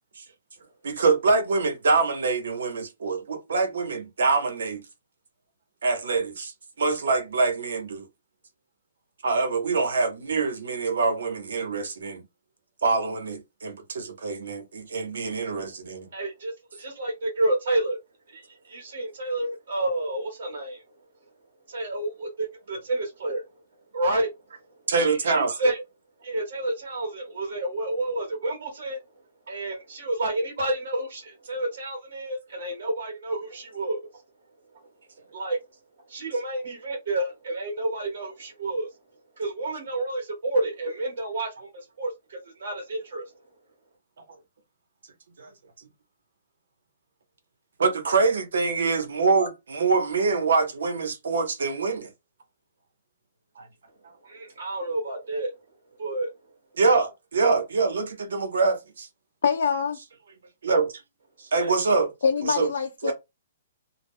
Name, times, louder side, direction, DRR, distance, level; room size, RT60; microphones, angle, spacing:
voice 1, 0.8-4.8 5.8-6.5 6.8-8.0 9.2-12.2 12.8-16.1 24.9-25.5 45.4-45.5 47.8-52.1 53.6-53.7 56.7-59.1 60.6-60.9 61.5-62.1 62.4-62.7 63.0-63.1, right 4 dB, 85° right, 0.8 m, -25 dB
voice 2, 16.1-18.0 18.3-20.8 21.7-23.4 23.9-24.3 25.0-25.8 26.2-29.0 29.5-34.1 35.3-35.6 36.1-38.9 39.4-43.2 54.2-55.5 56.0-56.3 61.6-61.7, right 1 dB, 55° right, 1.0 m, -29 dB
voice 3, 59.4-60.0 62.2-63.1, left 6 dB, 85° left, 0.5 m, -24 dB
2.2 x 2.1 x 3.4 m
hypercardioid pair, 175°, 0 cm